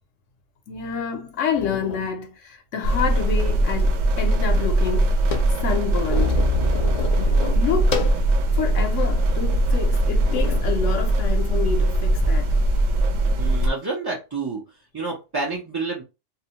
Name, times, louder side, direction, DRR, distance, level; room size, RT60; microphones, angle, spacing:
voice 1, 0.7-5.1 5.6-6.4 7.2-8.1 8.5-12.5, left 6 dB, 75° left, 1.0 m, -28 dB
sound 1, 0.9-1.0 1.5-2.1 2.8-3.9 4.1-4.2 4.5-8.3 8.8-8.9 9.6-9.8 10.2-10.7 11.7-12.3, left 4 dB, 55° left, 0.5 m, -30 dB
sound 2, 2.8-13.7, right 1 dB, 85° right, 1.0 m, -21 dB
voice 2, 13.4-14.6 14.9-16.0, right 3 dB, 30° right, 0.4 m, -29 dB
2.7 x 2.1 x 2.8 m
omnidirectional pair, 1.3 m